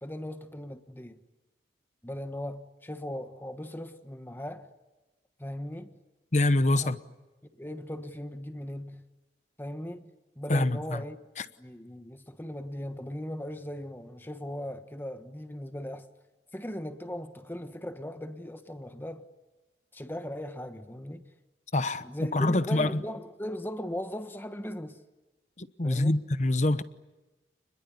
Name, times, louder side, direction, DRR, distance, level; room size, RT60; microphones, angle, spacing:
voice 1, 0.0-1.2 2.0-4.7 5.4-5.9 6.7-7.0 7.5-9.0 9.6-11.2 11.6-16.1 16.5-19.2 19.9-21.3 22.0-25.0 25.8-26.2, equal, 10° left, 1.3 m, -38 dB
voice 2, 6.3-7.0 10.5-10.8 21.7-22.1 22.3-23.0 25.6-26.8, left 2 dB, 40° left, 1.0 m, -25 dB
28.5 x 21.5 x 9.7 m
head